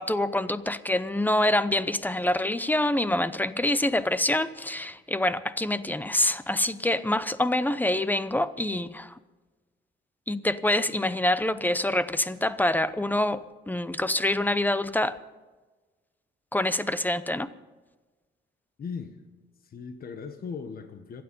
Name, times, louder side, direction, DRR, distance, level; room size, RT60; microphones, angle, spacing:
voice 1, 0.0-9.1 10.3-15.2 16.5-17.5, left 1 dB, 10° left, 14 dB, 0.8 m, -26 dB
voice 2, 18.8-19.2 19.6-21.2, left 5 dB, 50° left, 7 dB, 1.3 m, -38 dB
26.5 x 9.4 x 5.5 m, 1.2 s
cardioid pair, 90°, 20 cm